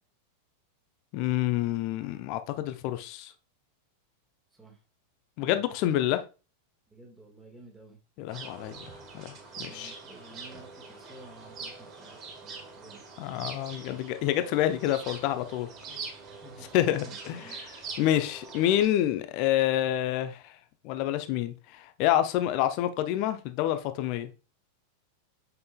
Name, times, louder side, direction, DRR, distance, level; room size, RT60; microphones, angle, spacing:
voice 1, 1.1-3.3 5.4-6.2 8.2-8.8 9.1-9.9 13.2-15.7 16.7-17.6 18.0-20.5 20.8-24.3, left 12 dB, 45° left, 0.7 m, -28 dB
voice 2, 5.4-5.7 6.9-8.0 9.6-13.0 15.9-16.1 16.4-16.7 17.0-17.7, right 2 dB, 10° right, 1.6 m, -52 dB
sound 1, 8.3-18.9, right 4 dB, 35° right, 1.5 m, -44 dB
7.8 x 5.3 x 2.3 m
figure-of-eight pair, 90°, 0 cm